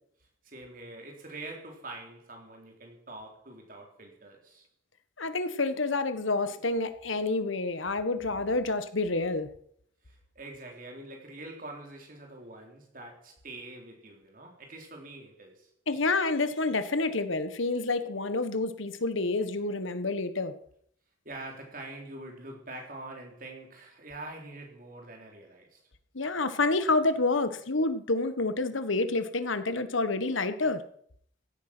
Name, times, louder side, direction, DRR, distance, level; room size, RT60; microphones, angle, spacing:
voice 1, 0.4-4.7 10.0-15.7 21.2-25.8, right 2 dB, 45° right, 4.0 m, -45 dB
voice 2, 5.2-9.5 15.9-20.5 26.1-30.8, left 3 dB, 80° left, 1.4 m, -28 dB
16.0 x 9.9 x 6.2 m
head